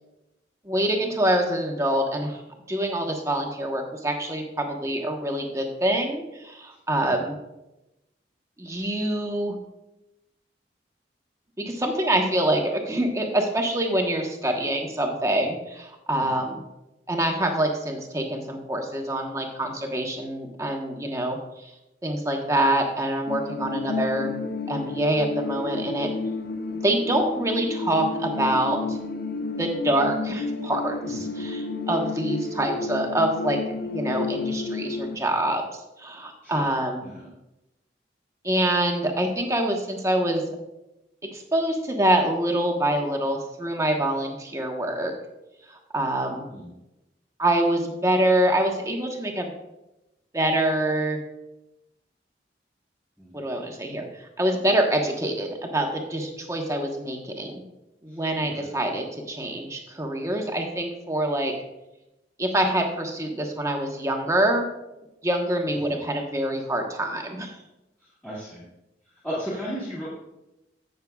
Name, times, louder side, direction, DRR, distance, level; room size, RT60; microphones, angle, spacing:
voice 1, 0.6-2.4 2.7-7.3 8.6-9.5 11.6-16.6 17.1-21.7 22.0-24.3 24.7-26.1 26.8-29.0 29.6-33.6 33.9-35.6 36.0-37.1 38.4-40.4 41.2-45.1 45.7-46.5 47.4-49.5 50.3-51.2 53.3-57.6 58.0-61.5 62.4-64.7 65.2-67.5, right 1 dB, 15° right, 2 dB, 1.1 m, -25 dB
sound 1, 23.3-35.2, left 3 dB, 55° left, 0.6 m, -31 dB
voice 2, 36.4-36.7 37.0-37.3 46.5-46.7 53.2-53.3 58.1-58.2 58.6-58.7 65.8-66.0 68.2-68.7 69.2-70.1, equal, 5° left, -8 dB, 1.9 m, -35 dB
15.0 x 6.5 x 2.3 m, 0.94 s
head